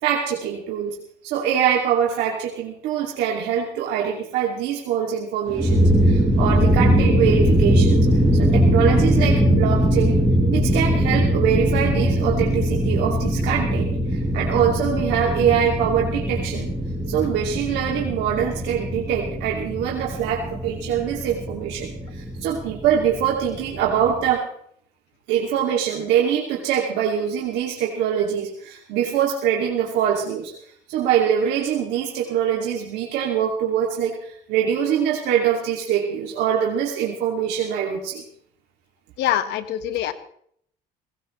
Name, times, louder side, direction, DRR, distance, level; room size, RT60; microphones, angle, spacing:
voice 1, 0.0-1.0 1.2-8.1 8.3-10.2 10.5-16.7 17.1-24.4 25.3-30.5 30.9-38.2, right 8 dB, 90° right, -1 dB, 2.6 m, -23 dB
sound 1, 5.5-24.3, equal, 5° left, 5.4 m, -21 dB
voice 2, 39.2-40.1, left 11 dB, 90° left, 10 dB, 1.5 m, -24 dB
22.0 x 18.5 x 3.3 m, 0.65 s
cardioid pair, 110°, 17 cm